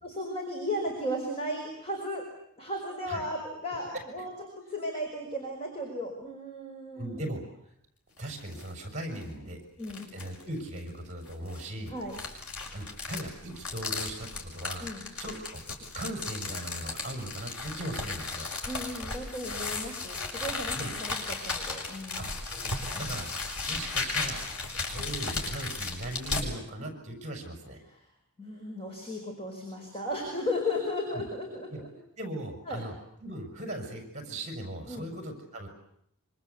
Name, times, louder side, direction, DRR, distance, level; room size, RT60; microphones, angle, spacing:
voice 1, 0.0-2.2 2.6-7.2 9.8-10.0 11.9-12.2 14.8-15.1 18.6-22.3 23.0-23.1 27.9-28.0 28.4-31.9 32.7-32.8 34.9-35.1, left 1 dB, 25° left, 1 dB, 5.3 m, -35 dB
voice 2, 6.9-7.4 8.2-9.6 10.1-11.9 12.7-14.9 15.2-15.6 15.9-18.5 20.7-20.9 22.2-22.3 22.5-23.3 23.6-24.4 24.8-27.8 31.1-31.2 31.7-31.8 32.2-32.9 33.2-35.7, right 1 dB, 35° right, 4 dB, 6.1 m, -38 dB
sound 1, 8.2-8.7 9.2-9.3 9.8-10.4 11.3-26.5, left 3 dB, 85° left, 6.7 m, -35 dB
26.0 x 25.5 x 8.3 m, 0.73 s
head